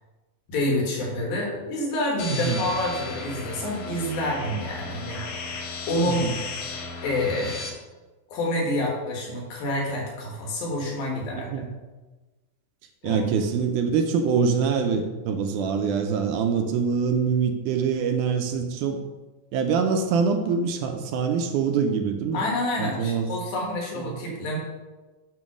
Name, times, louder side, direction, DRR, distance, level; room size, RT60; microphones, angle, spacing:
voice 1, 0.5-5.6 5.9-6.2 7.0-7.7 8.3-11.5 13.0-13.2 22.3-24.6, left 1 dB, 90° left, -2 dB, 3.4 m, -28 dB
sound 1, 2.2-7.7, left 3 dB, 70° left, 2.1 m, -35 dB
voice 2, 11.3-11.7 13.0-19.0 19.5-22.5 22.8-23.3 24.0-24.2, right 6 dB, 80° right, 5 dB, 1.9 m, -24 dB
8.9 x 3.1 x 6.1 m, 1.2 s
omnidirectional pair, 4.1 m